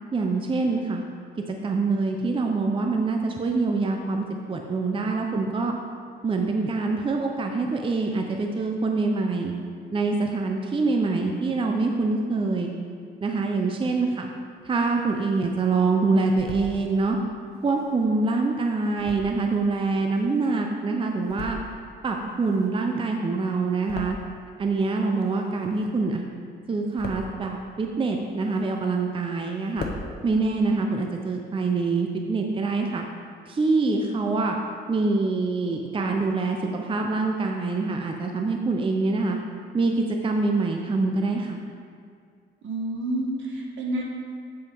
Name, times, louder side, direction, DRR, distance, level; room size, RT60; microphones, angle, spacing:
voice 1, 0.1-1.0 1.6-5.7 6.2-9.5 9.9-12.7 13.2-14.3 14.6-17.2 17.6-21.6 22.0-24.2 24.6-26.2 26.7-29.9 30.2-33.0 33.5-34.6 34.9-39.4 39.7-41.6, right 3 dB, 25° right, 3 dB, 0.6 m, -25 dB
sound 1, 14.5-15.5 16.0-16.7 17.4-20.7 21.1-21.9 22.2-24.6 24.9-26.1 26.5-27.5 28.0-29.0 29.3-29.4 29.6-30.1, left 3 dB, 55° left, 0.8 m, -41 dB
voice 2, 42.6-44.0, right 1 dB, 75° right, -2 dB, 1.5 m, -29 dB
7.7 x 4.2 x 5.3 m, 2.2 s
cardioid pair, 90°, 20 cm